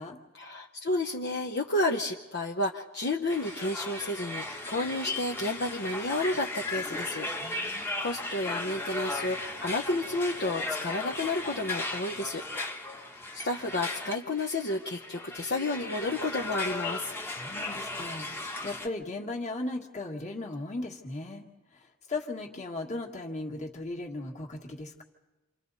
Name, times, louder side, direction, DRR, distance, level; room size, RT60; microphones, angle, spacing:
voice 1, 0.3-12.4 13.0-13.1 13.3-17.1, left 2 dB, 50° left, 1 dB, 1.0 m, -31 dB
sound 1, 3.3-18.9, left 2 dB, 10° left, 1.2 m, -36 dB
voice 2, 7.4-7.9 17.3-21.4 21.7-25.0, left 2 dB, 30° left, 0 dB, 1.9 m, -37 dB
29.0 x 26.5 x 4.1 m, 1.1 s
head